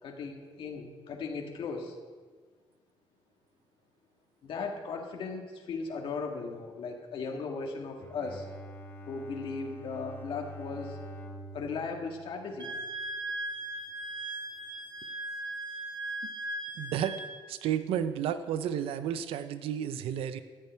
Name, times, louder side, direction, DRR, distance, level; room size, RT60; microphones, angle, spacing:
voice 1, 0.0-2.0 4.4-8.5 9.1-11.0 11.5-12.7, left 4 dB, 70° left, 2 dB, 1.9 m, -37 dB
Bowed string instrument, 7.9-13.2, right 1 dB, 25° left, 1.9 m, -46 dB
Wind instrument woodwind instrument, 12.6-17.3, right 2 dB, 50° right, 1.7 m, -38 dB
voice 2, 16.8-17.2 17.5-20.4, right 9 dB, 90° right, 11 dB, 0.6 m, -32 dB
14.0 x 5.7 x 9.2 m, 1.5 s
cardioid pair, 105°, 9 cm